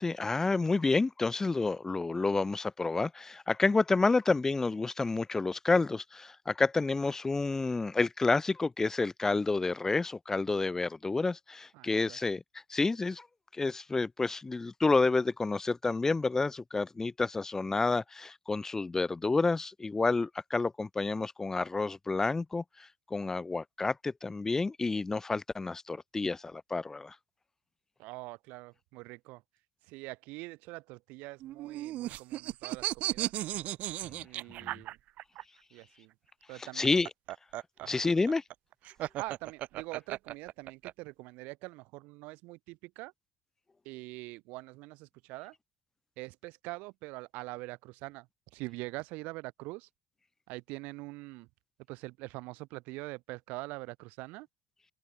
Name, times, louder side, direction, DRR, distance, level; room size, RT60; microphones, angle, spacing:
voice 1, 0.0-12.4 12.7-13.3 13.5-27.2 34.6-34.7 36.6-37.1 37.9-38.4, left 3 dB, 20° left, 2.0 m, -29 dB
voice 2, 11.7-12.2 28.0-29.4 29.9-33.3 34.2-35.0 35.7-36.1 36.5-36.9 37.8-38.0 39.2-43.1 43.8-45.5 46.2-48.3 48.5-49.9 50.5-51.5 51.9-54.5, right 23 dB, 80° right, 7.8 m, -44 dB
sound 1, 31.4-35.4 36.7-40.9, right 15 dB, 65° right, 2.6 m, -36 dB
open air
cardioid pair, 110°, 3 cm